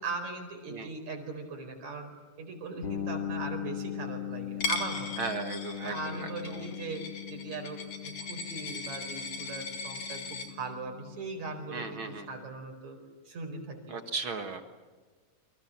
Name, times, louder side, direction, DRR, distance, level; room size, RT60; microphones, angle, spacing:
voice 1, 0.0-2.1 2.4-5.1 5.8-13.0 13.3-14.0, right 3 dB, 65° right, 3 dB, 5.9 m, -39 dB
sound 1, 2.8-12.5, left 10 dB, 40° left, 3.8 m, -40 dB
Coin (dropping), 4.6-10.5, left 4 dB, 55° left, 3.3 m, -38 dB
voice 2, 5.2-6.7 11.7-12.3 13.9-14.6, right 4 dB, 50° right, 7 dB, 2.1 m, -36 dB
29.0 x 24.5 x 7.3 m, 1.4 s
omnidirectional pair, 3.5 m